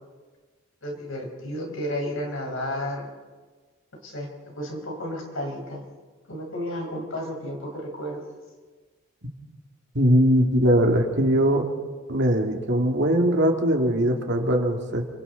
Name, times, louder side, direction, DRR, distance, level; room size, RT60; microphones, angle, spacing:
voice 1, 0.8-3.1 3.9-5.8 6.3-8.3, left 1 dB, 70° left, 1 dB, 4.7 m, -32 dB
voice 2, 9.9-11.7 12.1-15.0, equal, 55° right, 2 dB, 2.5 m, -21 dB
29.0 x 24.5 x 4.1 m, 1.4 s
head